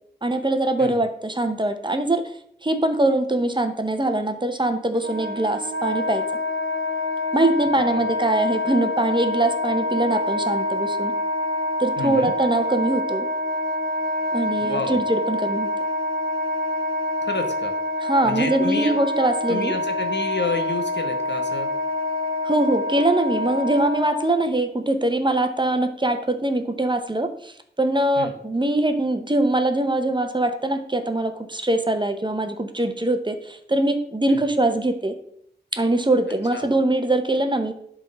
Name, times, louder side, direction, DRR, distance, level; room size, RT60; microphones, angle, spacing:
voice 1, 0.2-2.2 2.6-6.2 7.3-11.1 11.8-13.3 14.3-15.7 18.0-19.7 22.4-35.1 35.7-37.7, right 2 dB, 25° right, 7 dB, 0.9 m, -22 dB
Wind instrument woodwind instrument, 4.9-24.4, left 1 dB, 55° right, 1.5 m, -26 dB
voice 2, 12.0-12.3 14.6-15.0 17.2-17.7 18.2-19.0 19.5-21.7 28.2-28.3 34.3-34.4 36.5-36.6, left 3 dB, 80° left, 5 dB, 1.2 m, -30 dB
11.0 x 3.8 x 5.4 m, 0.68 s
wide cardioid pair, 75°, 18 cm